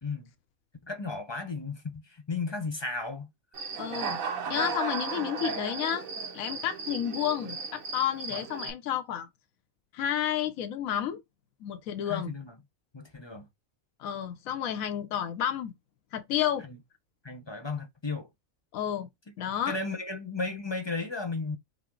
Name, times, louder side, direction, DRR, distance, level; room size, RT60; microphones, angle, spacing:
voice 1, 0.9-3.3 8.3-8.4 12.1-12.6 12.9-13.5 16.7-16.8 17.2-18.3 19.7-21.6, left 3 dB, 25° left, 0.7 m, -34 dB
Human voice / Cricket, 3.5-8.7, right 5 dB, 80° right, 1.3 m, -35 dB
voice 2, 3.8-6.1 6.3-9.3 9.9-11.2 11.6-12.3 14.0-15.7 16.1-16.7 18.7-19.1 19.4-19.8, left 10 dB, 80° left, 1.1 m, -31 dB
5.7 x 2.0 x 3.7 m
omnidirectional pair, 1.4 m